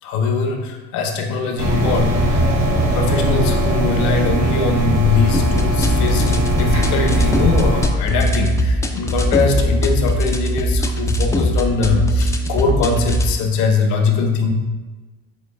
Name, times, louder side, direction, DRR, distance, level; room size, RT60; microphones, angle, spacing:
voice 1, 0.0-14.5, left 4 dB, 65° left, 3 dB, 0.8 m, -21 dB
sound 1, 1.6-7.9, right 1 dB, 85° right, 1.0 m, -19 dB
sound 2, 5.3-13.3, equal, 10° left, 0.3 m, -20 dB
6.5 x 3.0 x 2.2 m, 1.3 s
hypercardioid pair, 80°, 32 cm